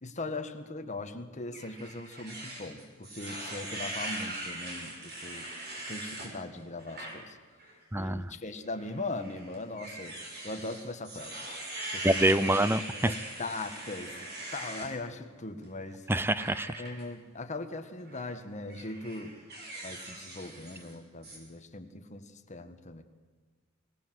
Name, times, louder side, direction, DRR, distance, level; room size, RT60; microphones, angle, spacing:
voice 1, 0.0-5.5 5.9-7.4 7.9-10.2 10.4-11.3 11.9-16.0 16.8-19.3 19.8-23.0, left 2 dB, 35° left, 7 dB, 1.7 m, -40 dB
sound 1, 1.5-6.3 6.8-7.1 7.6-7.7 8.8-14.9 16.4-17.0 18.0-18.2 18.7-20.9 21.2-21.4, right 1 dB, 50° right, 6.2 m, -41 dB
voice 2, 7.9-8.3 12.0-13.1 16.1-16.7, right 1 dB, 10° right, 16 dB, 0.6 m, -26 dB
23.5 x 18.0 x 7.9 m, 1.5 s
head